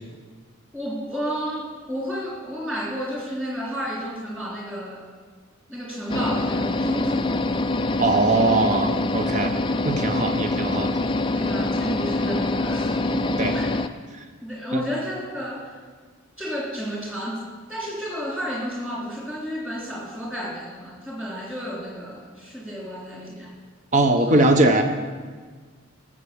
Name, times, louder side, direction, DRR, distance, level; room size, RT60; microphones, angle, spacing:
voice 1, 0.7-5.0 5.7-7.5 11.0-13.8 14.4-15.8 16.4-23.5 24.2-24.4, equal, 5° right, -4 dB, 3.3 m, -32 dB
sound 1, 6.1-13.9, left 2 dB, 20° left, 0.4 m, -25 dB
voice 2, 8.0-9.5 9.8-10.9 13.4-13.5 23.9-24.8, right 2 dB, 35° right, 6 dB, 1.1 m, -20 dB
16.5 x 7.4 x 6.9 m, 1.5 s
head